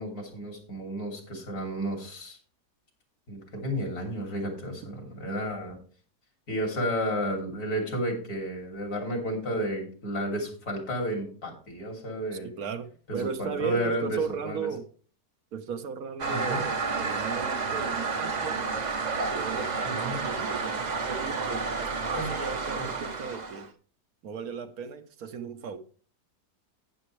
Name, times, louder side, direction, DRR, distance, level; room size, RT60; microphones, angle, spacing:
voice 1, 0.0-2.4 3.3-5.8 6.5-12.5 13.1-14.6 16.3-16.6 19.8-20.2 22.1-22.3, equal, 70° left, 3.6 m, -32 dB
voice 2, 12.4-14.9 15.5-18.7 19.4-23.7 24.2-25.8, right 6 dB, 70° right, 1.3 m, -36 dB
Toilet flush, 16.2-23.7, right 4 dB, 35° right, 0.7 m, -30 dB
11.5 x 9.3 x 3.2 m
omnidirectional pair, 1.7 m